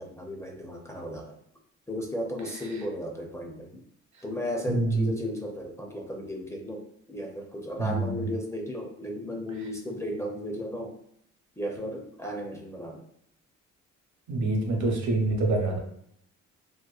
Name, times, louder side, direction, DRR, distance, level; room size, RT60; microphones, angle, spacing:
voice 1, 0.0-1.4 1.9-3.8 4.2-11.0 11.6-13.0, left 1 dB, 10° left, 0 dB, 0.4 m, -35 dB
voice 2, 4.7-5.1 7.8-8.3 9.6-9.7 14.3-15.8, right 2 dB, 70° right, 1 dB, 0.8 m, -26 dB
2.9 x 2.1 x 2.3 m, 0.69 s
cardioid pair, 90°, 30 cm